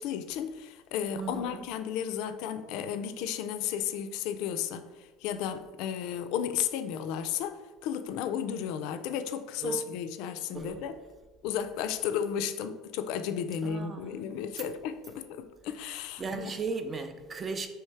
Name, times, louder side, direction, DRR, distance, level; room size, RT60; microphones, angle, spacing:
voice 1, 0.0-11.0 11.4-16.5, left 8 dB, 70° left, 0.3 m, -33 dB
voice 2, 1.2-1.6 9.6-9.9 10.5-10.8 13.6-14.2 16.2-17.7, right 4 dB, 30° right, 0.5 m, -36 dB
3.2 x 3.1 x 4.6 m
supercardioid pair, 90°, 0 cm